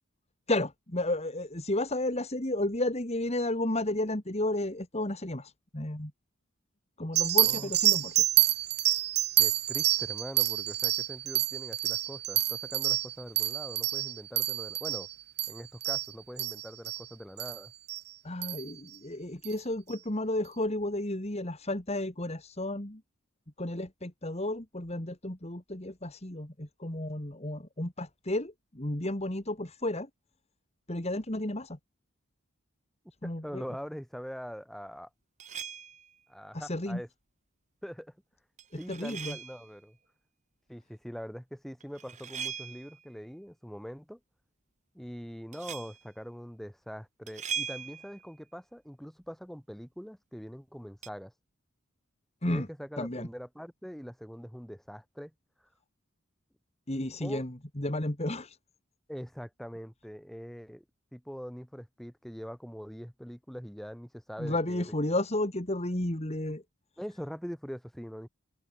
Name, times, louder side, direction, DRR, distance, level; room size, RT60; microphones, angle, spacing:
voice 1, 0.5-6.1 7.0-8.2 18.2-23.0 23.6-30.1 30.9-31.8 33.2-33.6 36.5-37.0 38.7-39.4 52.4-52.7 53.0-53.3 56.9-58.6 64.4-66.6, left 1 dB, 30° left, 2.3 m, -32 dB
sound 1, 7.2-17.0 17.4-17.6 17.9-18.0 18.4-18.7 19.4-19.5, right 14 dB, 50° right, 3.0 m, -28 dB
voice 2, 9.4-15.1 15.5-17.7 33.2-35.1 36.3-37.1 37.8-38.1 38.8-40.0 40.7-44.2 44.9-51.3 52.5-55.3 57.2-57.4 59.1-60.8 61.1-64.9 67.0-68.3, equal, ahead, 3.8 m, -43 dB
sound 2, 35.4-36.1 38.6-39.7 41.8-43.1 45.5-46.0 47.3-48.3 51.0-51.1, right 8 dB, 35° right, 3.0 m, -39 dB
head